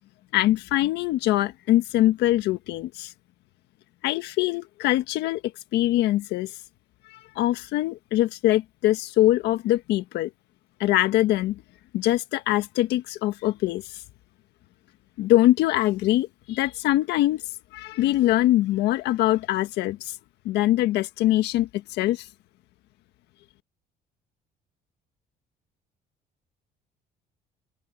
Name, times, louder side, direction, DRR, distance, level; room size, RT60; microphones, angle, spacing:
voice 1, 0.3-3.1 4.0-5.4 5.7-6.5 7.3-10.3 10.8-11.6 11.9-13.8 15.2-17.4 17.7-20.1 20.4-21.7 22.0-22.2, left 15 dB, 85° left, 1.5 m, -23 dB
open air
cardioid pair, 110°, 17 cm